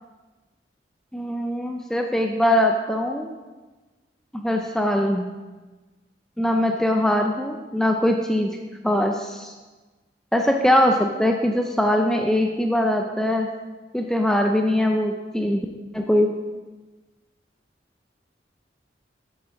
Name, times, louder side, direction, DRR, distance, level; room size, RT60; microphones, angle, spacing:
voice 1, 1.1-3.3 4.3-5.3 6.4-8.6 8.8-9.5 10.3-13.5 13.9-15.7 15.9-16.3, left 1 dB, 5° left, 3 dB, 0.5 m, -22 dB
12.5 x 8.4 x 3.8 m, 1.3 s
head